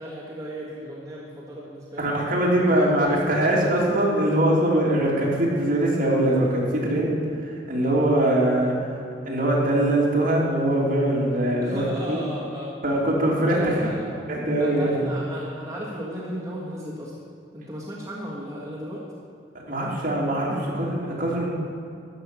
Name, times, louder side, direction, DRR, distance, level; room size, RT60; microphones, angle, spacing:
voice 1, 0.0-2.1 2.7-3.2 11.6-12.8 13.5-14.2 14.6-17.1 17.5-19.0, equal, 15° right, -6 dB, 1.6 m, -35 dB
voice 2, 2.0-7.2 7.4-12.2 12.8-13.9 14.3-15.1 19.6-21.5, right 1 dB, 50° right, -4 dB, 2.9 m, -22 dB
13.0 x 5.9 x 8.5 m, 2.6 s
head